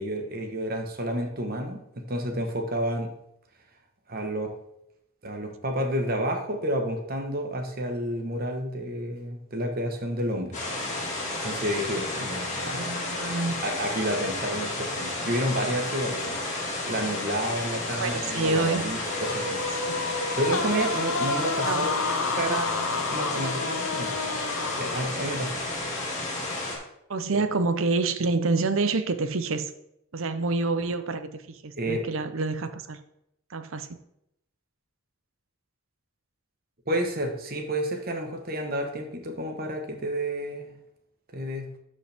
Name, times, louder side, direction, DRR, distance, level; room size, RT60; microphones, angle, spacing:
voice 1, 0.0-3.1 4.1-4.5 5.2-10.6 11.4-12.9 13.6-16.4 16.9-19.6 20.4-24.1 24.8-25.5 27.3-27.4 31.8-32.1 36.9-40.7 41.3-41.7, right 1 dB, 40° right, 4 dB, 1.2 m, -30 dB
sound 1, 10.5-26.8, left 2 dB, 35° left, 2.1 m, -32 dB
voice 2, 12.6-13.6 18.0-18.9 19.8-20.0 21.6-22.0 27.1-29.7 30.1-33.0 33.5-33.9, right 3 dB, 65° right, 10 dB, 0.7 m, -27 dB
sound 2, 19.0-25.4, left 4 dB, 70° left, 0.7 m, -30 dB
12.0 x 5.5 x 3.5 m, 0.80 s
head